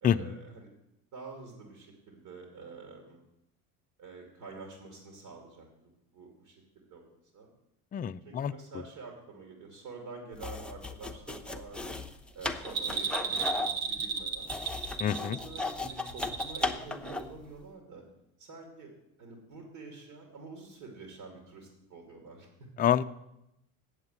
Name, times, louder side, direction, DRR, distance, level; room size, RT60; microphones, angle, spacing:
voice 1, 0.0-0.7 1.1-3.2 4.0-7.1 7.3-7.5 8.2-11.8 12.3-14.5 15.2-18.0 18.4-18.9 19.2-22.7, right 4 dB, 65° right, 1 dB, 2.6 m, -47 dB
voice 2, 7.9-8.5 15.0-15.4 22.8-23.0, left 9 dB, 20° left, 11 dB, 0.4 m, -27 dB
sound 1, 10.3-17.4, left 3 dB, ahead, 0.8 m, -36 dB
Bell, 12.6-16.8 17.1-17.2, right 5 dB, 90° right, 1.3 m, -34 dB
8.1 x 8.0 x 7.7 m, 0.87 s
hypercardioid pair, 75°, 41 cm